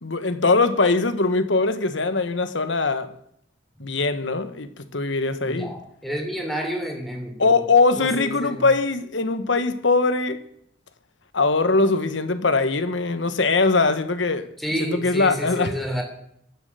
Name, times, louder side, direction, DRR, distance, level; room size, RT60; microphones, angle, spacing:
voice 1, 0.0-3.1 3.8-5.7 7.4-10.4 11.3-14.5 14.8-15.8, left 3 dB, 70° left, 1.2 m, -21 dB
voice 2, 5.4-7.5 8.0-8.7 14.6-16.0, equal, ahead, 3.2 m, -30 dB
21.5 x 7.5 x 6.9 m
head